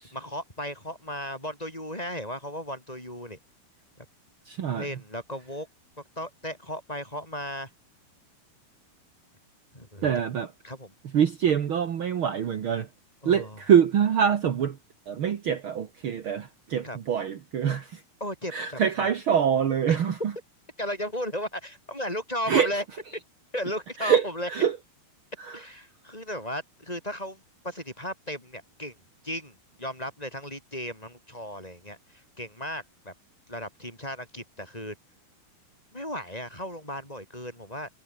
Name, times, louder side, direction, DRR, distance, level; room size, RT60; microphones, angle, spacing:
voice 1, 0.1-3.4 4.7-5.7 6.2-7.7 9.7-10.1 10.6-10.9 13.2-13.6 16.8-17.0 18.2-19.1 20.8-22.8 23.1-23.2 23.5-24.5 25.5-28.9 29.2-33.1 33.5-35.0 35.9-37.9, equal, 10° left, 7.6 m, -35 dB
voice 2, 4.5-4.9 10.0-10.5 11.1-12.9 13.2-14.8 15.1-18.0 18.5-20.2 22.5-22.7 24.0-24.8 25.4-25.6, right 8 dB, 60° right, 1.3 m, -25 dB
omnidirectional pair, 4.5 m